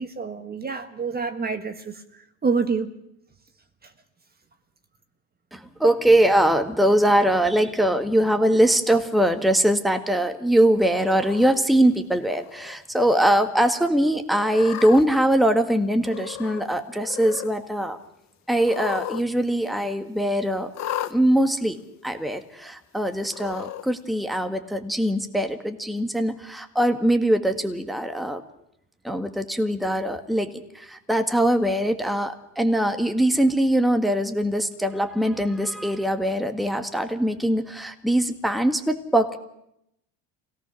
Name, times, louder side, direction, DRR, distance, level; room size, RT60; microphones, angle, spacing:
voice 1, 0.0-2.9 3.8-3.9, right 5 dB, 25° right, 7 dB, 1.6 m, -28 dB
voice 2, 5.5-18.0 18.5-20.7 21.1-28.4 29.0-39.4, right 1 dB, ahead, 6 dB, 1.7 m, -22 dB
Cat, 11.0-11.6 12.3-12.7 13.1-13.2 14.3-15.0 16.0-16.7 16.9-17.5 18.6-19.2 19.5-19.6 20.7-21.1 22.0-22.1 23.3-23.8, left 12 dB, 40° left, 1.3 m, -34 dB
25.0 x 17.5 x 6.3 m, 0.78 s
supercardioid pair, 110°, 41 cm